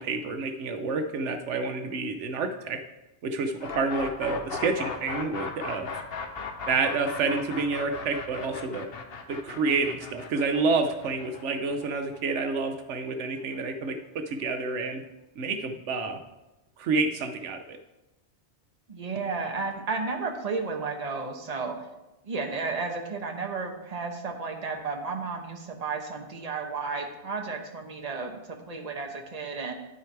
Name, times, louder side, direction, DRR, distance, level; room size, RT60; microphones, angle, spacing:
voice 1, 0.0-2.8 3.2-5.9 6.7-8.9 9.3-15.0 15.4-16.2 16.8-17.8, right 4 dB, 80° right, 7 dB, 1.0 m, -29 dB
sound 1, 3.6-13.4, left 5 dB, 55° left, 1.0 m, -38 dB
voice 2, 18.9-21.7 22.2-29.7, right 4 dB, 35° right, 3 dB, 1.1 m, -33 dB
12.5 x 4.6 x 4.6 m, 0.99 s
omnidirectional pair, 1.2 m